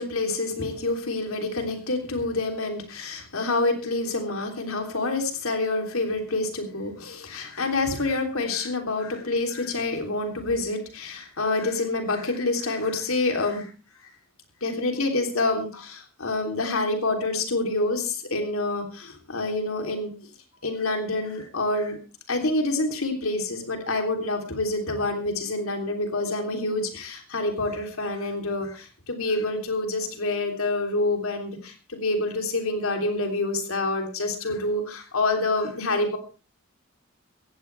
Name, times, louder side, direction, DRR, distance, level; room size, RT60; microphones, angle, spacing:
voice 1, 0.0-13.7 14.0-14.1 14.6-20.3 20.6-22.0 22.3-36.2, left 2 dB, 80° left, 4 dB, 3.3 m, -27 dB
17.5 x 15.0 x 3.4 m, 0.35 s
head